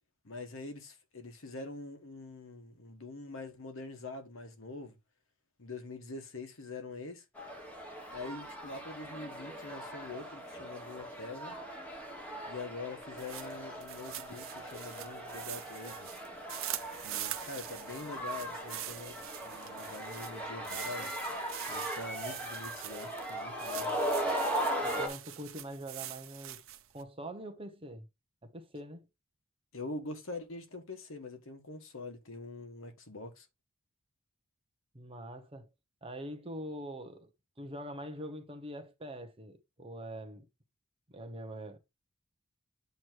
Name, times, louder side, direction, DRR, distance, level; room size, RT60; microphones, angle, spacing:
voice 1, 0.2-5.0 5.6-7.2 8.1-11.6 12.5-16.2 17.0-21.1 21.7-24.0 29.7-33.5, left 3 dB, 65° left, 1.3 m, -44 dB
sound 1, 7.4-25.1, equal, 5° left, 1.6 m, -39 dB
sound 2, 13.0-27.0, right 13 dB, 70° right, 0.8 m, -44 dB
voice 2, 24.8-26.6 26.9-28.1 28.4-29.1 34.9-35.7 36.0-37.3 37.6-40.4 41.1-41.8, right 1 dB, 25° right, 1.0 m, -44 dB
8.1 x 3.1 x 4.6 m
head